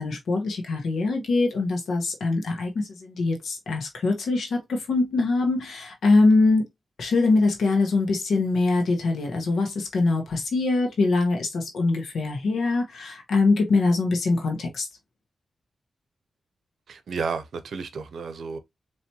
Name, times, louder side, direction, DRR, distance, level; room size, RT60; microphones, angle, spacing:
voice 1, 0.0-6.6 7.0-14.9, left 3 dB, 90° left, 1.3 m, -23 dB
voice 2, 16.9-18.6, right 5 dB, 80° right, 0.7 m, -32 dB
4.4 x 3.1 x 2.8 m
cardioid pair, 80°, 0 cm